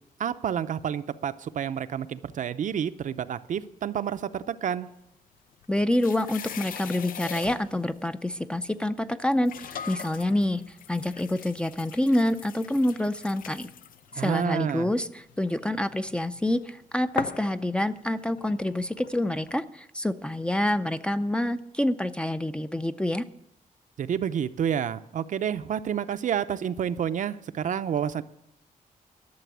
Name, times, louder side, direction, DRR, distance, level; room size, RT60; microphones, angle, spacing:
voice 1, 0.2-4.9 14.2-14.9 24.0-28.2, right 8 dB, 60° right, 11 dB, 0.6 m, -29 dB
sound 1, 5.3-7.9 8.7-8.8 9.4-16.7 17.2-19.6, left 9 dB, 80° left, 0.6 m, -41 dB
voice 2, 5.7-10.6 10.9-13.7 14.2-23.2, left 1 dB, 5° left, 10 dB, 0.5 m, -27 dB
12.5 x 6.9 x 9.4 m, 0.79 s
wide cardioid pair, 135°, 14 cm